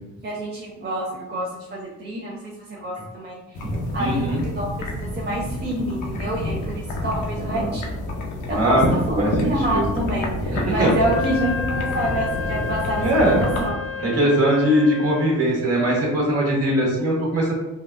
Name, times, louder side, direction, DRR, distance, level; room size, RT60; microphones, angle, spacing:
voice 1, 0.2-2.5 2.8-3.6 3.9-7.8 8.5-14.2, right 1 dB, 35° right, -4 dB, 0.6 m, -27 dB
sound 1, 3.5-13.7, left 1 dB, 80° left, 0.7 m, -28 dB
voice 2, 4.0-4.4 7.3-7.8 8.5-8.9 9.2-9.8 10.5-10.9 13.0-13.4 14.0-17.5, right 1 dB, 55° right, -3 dB, 1.3 m, -21 dB
Wind instrument woodwind instrument, 10.9-15.4, left 6 dB, 45° left, 0.4 m, -31 dB
3.6 x 2.2 x 2.5 m, 1.1 s
cardioid pair, 90°, 30 cm